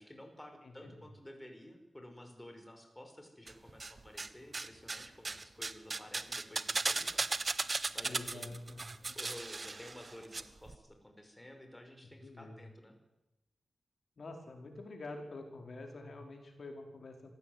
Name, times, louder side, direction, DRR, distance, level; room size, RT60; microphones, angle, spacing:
voice 1, 0.0-7.5 7.9-8.5 9.1-13.0, left 1 dB, 10° left, 4 dB, 5.5 m, -52 dB
voice 2, 0.6-1.0 8.0-9.0 12.2-12.6 14.2-17.3, left 2 dB, 60° left, 4 dB, 4.9 m, -47 dB
sound 1, 3.5-4.3 4.5-10.4 10.7-10.8, right 3 dB, 40° right, 1.4 m, -36 dB
26.0 x 16.5 x 9.6 m, 0.94 s
cardioid pair, 70°, 0 cm